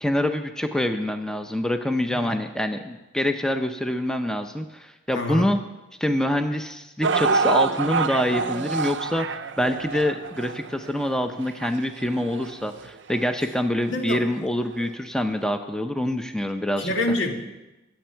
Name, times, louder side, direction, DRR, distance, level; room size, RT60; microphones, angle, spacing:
voice 1, 0.0-5.6 6.0-9.3 9.6-16.9, left 1 dB, 5° left, 6 dB, 0.6 m, -25 dB
voice 2, 5.1-5.5 13.9-14.2 16.8-17.3, left 1 dB, 85° left, 2 dB, 2.0 m, -26 dB
sound 1, 7.0-13.2 13.9-14.0 14.8-14.9, right 4 dB, 75° right, 0.6 m, -27 dB
24.0 x 8.6 x 4.6 m, 1.0 s
head